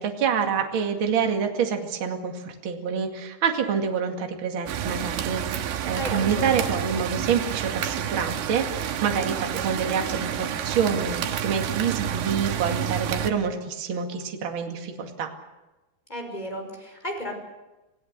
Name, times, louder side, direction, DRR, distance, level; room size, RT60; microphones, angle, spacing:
voice 1, 0.0-15.3, right 6 dB, 40° right, 3 dB, 2.3 m, -27 dB
sound 1, 4.7-13.3, right 10 dB, 90° right, 3.4 m, -29 dB
voice 2, 5.9-6.7 16.1-17.3, equal, 10° left, 2 dB, 5.3 m, -34 dB
28.0 x 17.5 x 6.7 m, 1.1 s
omnidirectional pair, 4.7 m